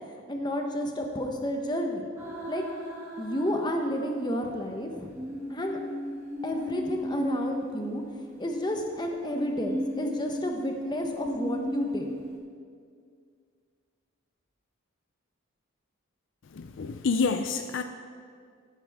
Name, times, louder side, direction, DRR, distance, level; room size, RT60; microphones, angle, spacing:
voice 1, 0.3-2.1 2.5-2.6 3.2-5.1 5.5-5.8 6.4-8.0 8.4-12.1, equal, 20° left, 3 dB, 1.0 m, -31 dB
sound 1, 2.2-4.3 5.1-8.8 9.6-12.4, equal, 15° right, 2.3 m, -36 dB
voice 2, 16.6-17.8, left 4 dB, 60° left, 8 dB, 0.4 m, -28 dB
14.0 x 11.5 x 3.6 m, 2.1 s
head